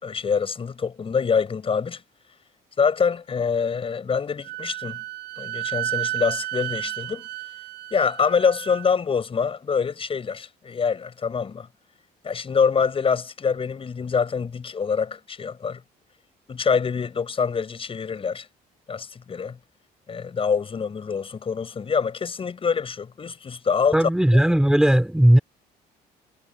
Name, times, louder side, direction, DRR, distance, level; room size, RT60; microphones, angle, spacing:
voice 1, 0.0-2.0 2.8-5.0 5.4-7.2 7.9-11.7 12.2-15.8 16.5-18.5 18.9-19.6 20.1-24.0, left 6 dB, 35° left, 5.8 m, -25 dB
Wind instrument woodwind instrument, 4.4-8.9, right 16 dB, 80° right, 7.4 m, -32 dB
voice 2, 23.9-25.4, right 1 dB, 5° right, 3.3 m, -17 dB
cardioid pair, 110°, 17 cm